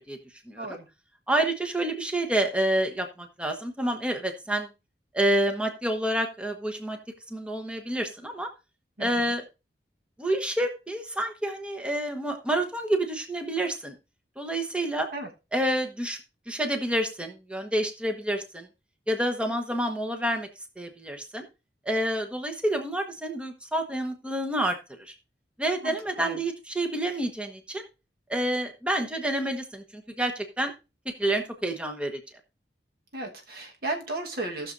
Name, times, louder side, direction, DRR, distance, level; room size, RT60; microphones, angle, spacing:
voice 1, 1.3-4.7 5.1-7.0 7.3-8.5 9.0-9.4 10.2-13.9 14.4-15.1 15.5-16.2 16.5-18.7 19.1-20.5 20.8-21.4 21.8-25.1 25.6-27.8 28.3-30.7 31.2-32.2, right 1 dB, 5° right, 4 dB, 1.0 m, -28 dB
voice 2, 25.8-26.4 33.1-34.7, right 2 dB, 60° right, 2 dB, 1.4 m, -35 dB
18.0 x 6.5 x 2.6 m, 0.28 s
head